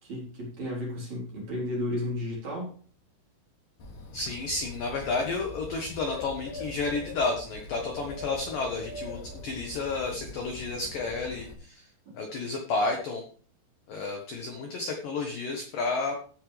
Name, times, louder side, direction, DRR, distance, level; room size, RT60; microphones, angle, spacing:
voice 1, 0.0-2.8 12.1-12.2, left 1 dB, 35° right, -3 dB, 4.8 m, -33 dB
Bird, 3.8-11.5, left 3 dB, 45° left, 3.5 m, -42 dB
voice 2, 4.1-11.9 12.1-13.2 13.9-16.2, left 3 dB, 70° left, 3 dB, 2.1 m, -31 dB
15.5 x 8.6 x 3.4 m, 0.43 s
omnidirectional pair, 5.9 m